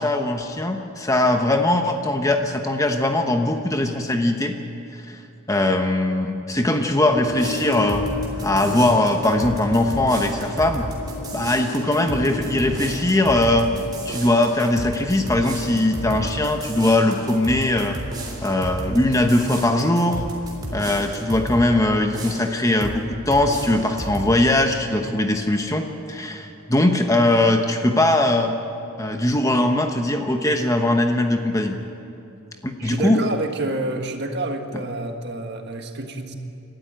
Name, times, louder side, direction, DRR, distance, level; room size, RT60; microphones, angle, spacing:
voice 1, 0.0-4.6 4.9-5.2 5.5-8.0 8.4-10.8 11.3-13.7 14.0-18.0 18.4-20.2 20.7-28.5 29.0-31.8 32.6-33.3, left 1 dB, 15° left, 4 dB, 1.0 m, -20 dB
sound 1, 7.1-26.8, left 3 dB, 90° left, 4.4 m, -37 dB
sound 2, 7.3-21.7 22.1-23.0 23.3-24.3, right 1 dB, 20° right, 3.6 m, -33 dB
voice 2, 32.8-36.3, right 2 dB, 50° right, 4 dB, 1.7 m, -28 dB
28.5 x 13.0 x 9.3 m, 2.7 s
head